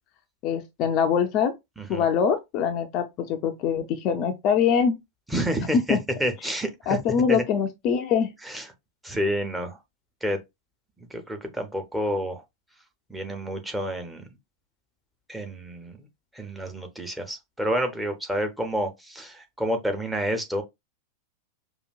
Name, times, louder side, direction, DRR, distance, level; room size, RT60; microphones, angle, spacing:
voice 1, 0.4-1.5 1.9-5.0 5.7-6.0 6.9-8.3, left 7 dB, 40° left, 0.5 m, -23 dB
voice 2, 5.3-7.0 7.3-7.4 8.4-8.7 9.0-9.8 10.2-10.4 11.1-12.4 13.1-14.2 15.3-16.0 16.3-20.6, equal, 5° right, 0.9 m, -29 dB
5.0 x 2.5 x 2.3 m
figure-of-eight pair, 90°, 0 cm